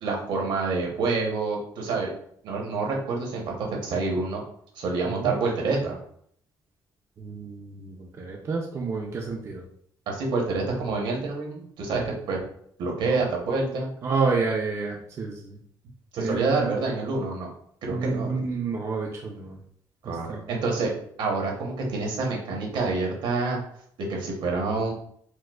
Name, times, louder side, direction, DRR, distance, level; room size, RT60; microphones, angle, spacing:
voice 1, 0.0-2.1 2.4-4.4 4.7-6.0 10.1-12.4 12.8-13.9 16.1-17.5 17.8-18.3 20.0-20.9 21.2-23.6 24.1-24.9, right 3 dB, 70° right, 0 dB, 0.9 m, -27 dB
voice 2, 7.2-9.6 13.1-13.2 14.0-15.6 16.2-16.7 17.9-19.6 20.3-20.4, right 4 dB, 35° right, 0 dB, 0.4 m, -29 dB
4.4 x 2.1 x 2.3 m, 0.66 s
cardioid pair, 145°, 8 cm